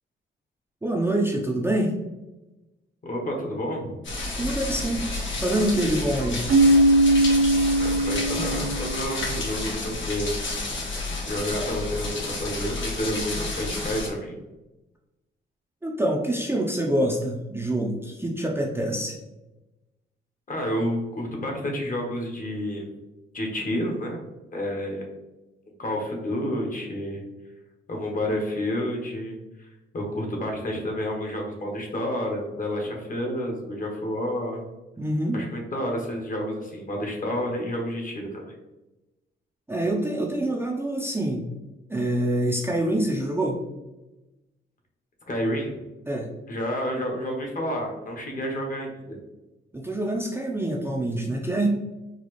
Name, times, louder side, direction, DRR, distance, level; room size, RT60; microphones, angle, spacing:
voice 1, 0.8-1.9 4.4-5.1 5.4-6.4 15.8-19.2 35.0-35.4 39.7-41.5 41.9-43.6 46.1-46.3 49.7-51.7, right 1 dB, 10° right, -2 dB, 0.5 m, -25 dB
voice 2, 3.0-3.9 7.8-10.4 11.3-14.4 20.5-22.9 23.3-24.2 24.5-25.1 25.8-27.2 27.9-29.7 29.9-34.6 35.3-38.5 45.3-45.8 46.5-49.0, equal, 40° left, 0 dB, 1.0 m, -30 dB
sound 1, 4.0-14.1, left 2 dB, 65° left, 1.3 m, -31 dB
Keyboard (musical), 6.5-9.1, right 1 dB, 55° right, 0.7 m, -20 dB
4.0 x 2.4 x 3.1 m, 1.0 s
cardioid pair, 90°, 21 cm